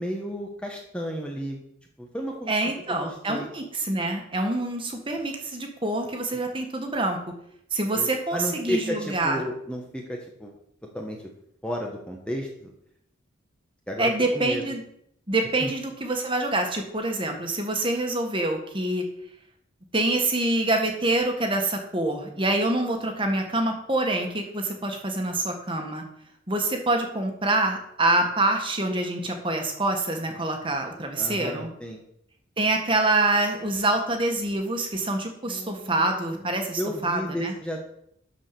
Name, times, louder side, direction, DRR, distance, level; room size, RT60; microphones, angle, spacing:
voice 1, 0.0-1.6 2.0-2.5 2.9-3.5 6.3-6.4 7.9-10.5 10.9-11.3 11.6-12.7 13.9-14.6 15.6-15.7 31.2-32.0 35.5-36.5 36.8-37.8, equal, 5° left, 0 dB, 1.1 m, -33 dB
voice 2, 2.5-7.2 7.7-9.4 14.0-14.8 15.3-19.0 19.9-26.0 26.5-31.7 32.6-37.5, right 2 dB, 25° right, 3 dB, 1.6 m, -26 dB
12.0 x 4.9 x 6.8 m, 0.72 s
head